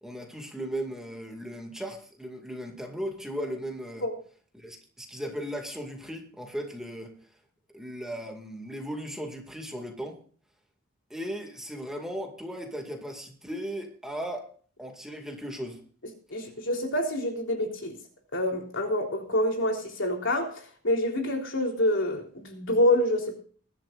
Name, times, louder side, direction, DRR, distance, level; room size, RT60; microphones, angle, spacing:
voice 1, 0.0-4.1 4.5-7.1 7.7-10.2 11.1-14.5 14.8-15.8, equal, 5° right, 2.3 m, -37 dB
voice 2, 16.3-18.0 18.3-23.3, left 1 dB, 65° left, 3.7 m, -27 dB
21.5 x 12.5 x 2.6 m
head